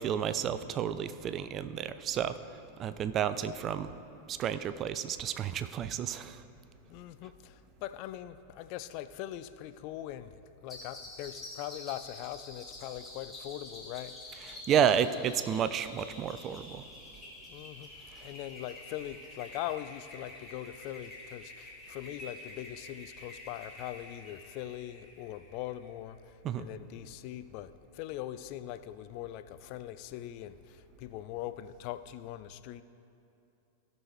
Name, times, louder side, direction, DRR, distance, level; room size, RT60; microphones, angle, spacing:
voice 1, 0.0-2.4 2.8-3.9 4.3-6.4 14.7-16.8 26.4-26.7, right 8 dB, 30° right, 12 dB, 0.4 m, -31 dB
voice 2, 6.9-14.8 17.5-17.9 18.2-32.8, left 13 dB, 45° left, 12 dB, 0.3 m, -41 dB
sound 1, 10.7-25.9, left 2 dB, 15° left, 1.6 m, -48 dB
16.0 x 6.2 x 3.4 m, 2.7 s
figure-of-eight pair, 90°, 0 cm